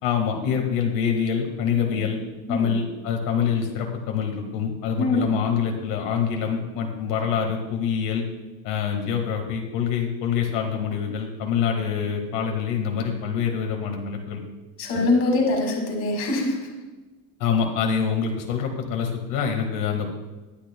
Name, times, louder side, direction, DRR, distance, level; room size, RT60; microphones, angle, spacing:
voice 1, 0.0-2.2 2.5-8.2 8.6-14.4 14.9-15.1 17.4-20.1, left 7 dB, 75° left, 3 dB, 1.7 m, -25 dB
voice 2, 5.0-5.3 14.8-16.6, left 2 dB, 35° left, 1 dB, 2.1 m, -23 dB
20.5 x 8.6 x 2.2 m, 1.2 s
cardioid pair, 180°, 41 cm